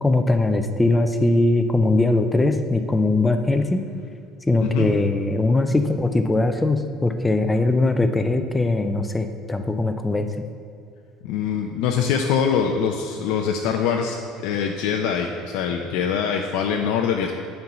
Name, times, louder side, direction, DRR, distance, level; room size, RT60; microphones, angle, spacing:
voice 1, 0.0-3.8 4.5-10.3, left 2 dB, 10° left, 7 dB, 0.4 m, -20 dB
voice 2, 11.2-17.3, left 7 dB, 65° left, 2 dB, 0.5 m, -23 dB
9.2 x 4.5 x 6.7 m, 2.5 s
cardioid pair, 180°, 0 cm